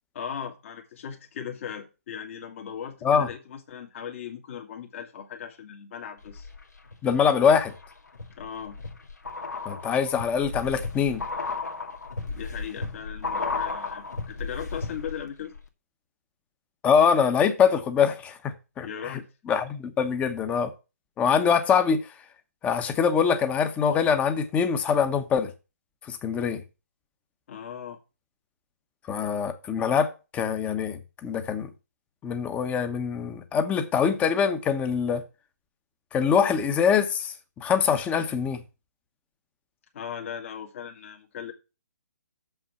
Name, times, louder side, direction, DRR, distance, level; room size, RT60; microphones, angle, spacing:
voice 1, 0.1-6.5 8.4-8.8 12.3-15.5 18.8-19.3 27.5-28.0 39.9-41.5, left 8 dB, 50° left, 1.9 m, -38 dB
sound 1, 6.2-7.0 7.4-15.3 15.5-15.6, left 4 dB, 85° left, 2.0 m, -34 dB
voice 2, 7.0-7.7 9.6-11.2 16.8-19.2 19.5-20.7 21.2-22.0 22.6-25.5 26.0-26.6 29.1-31.7 32.2-35.2 36.1-38.6, left 6 dB, 15° left, 1.0 m, -24 dB
7.2 x 5.7 x 7.0 m
figure-of-eight pair, 140°, 9 cm